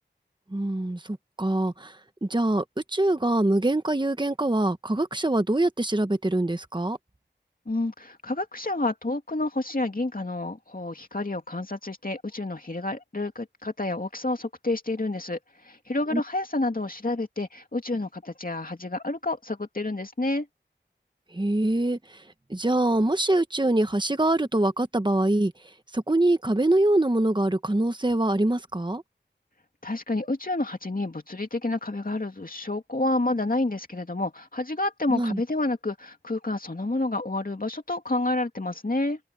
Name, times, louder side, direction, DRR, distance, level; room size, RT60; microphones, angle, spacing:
voice 1, 0.5-2.0 2.2-7.0 16.1-16.2 21.3-22.2 22.5-25.5 25.9-29.0 35.1-35.4, right 1 dB, 25° right, 1.3 m, -24 dB
voice 2, 7.7-20.5 29.8-39.2, left 2 dB, 45° left, 2.6 m, -29 dB
wide cardioid pair, 55°, 19 cm